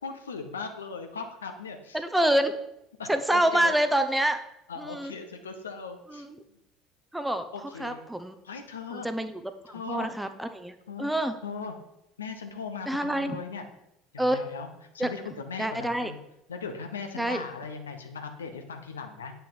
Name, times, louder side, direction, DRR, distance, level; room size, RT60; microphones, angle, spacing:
voice 1, 0.0-2.0 3.0-3.7 4.7-6.3 7.5-8.0 8.4-9.1 9.7-10.3 10.9-11.1 11.4-11.7 12.2-13.7 14.1-14.7 14.9-16.2 16.5-19.3, left 5 dB, 75° left, 6 dB, 0.9 m, -38 dB
voice 2, 1.9-2.5 3.1-4.4 4.8-5.1 6.1-6.4 7.1-7.4 7.8-8.3 8.9-11.4 12.9-13.4 14.2-14.4 15.0-15.1 15.6-16.1 17.2-17.4, right 1 dB, 5° right, 8 dB, 0.8 m, -27 dB
8.6 x 5.8 x 5.7 m, 0.84 s
figure-of-eight pair, 65°, 0 cm